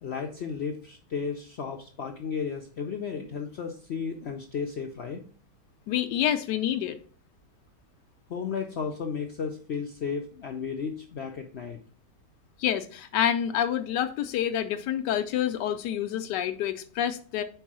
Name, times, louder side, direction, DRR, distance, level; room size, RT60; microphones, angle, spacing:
voice 1, 0.0-5.2 8.3-11.8, left 6 dB, 65° left, 4 dB, 0.6 m, -34 dB
voice 2, 5.9-7.0 12.6-17.4, left 10 dB, 90° left, 8 dB, 1.2 m, -28 dB
4.7 x 4.5 x 6.0 m, 0.42 s
omnidirectional pair, 1.8 m